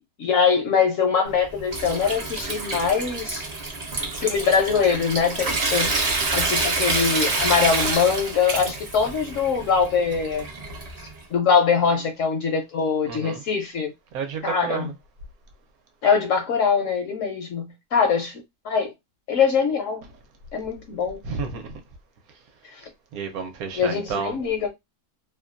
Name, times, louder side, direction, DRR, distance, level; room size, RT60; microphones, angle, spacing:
voice 1, 0.2-3.4 4.2-5.9 6.3-10.5 11.3-13.9 14.4-14.9 16.0-18.9 19.3-20.0 20.5-21.2 22.7-22.8 23.7-24.7, left 6 dB, 70° left, 0.8 m, -22 dB
Water tap faucet / Sink (filling or washing) / Trickle dribble, 1.3-11.2, right 3 dB, 55° right, 0.4 m, -27 dB
voice 2, 13.1-13.4 14.1-14.9 21.2-21.7 23.1-24.4, right 6 dB, 75° right, 1.0 m, -30 dB
2.7 x 2.2 x 2.4 m
omnidirectional pair, 1.7 m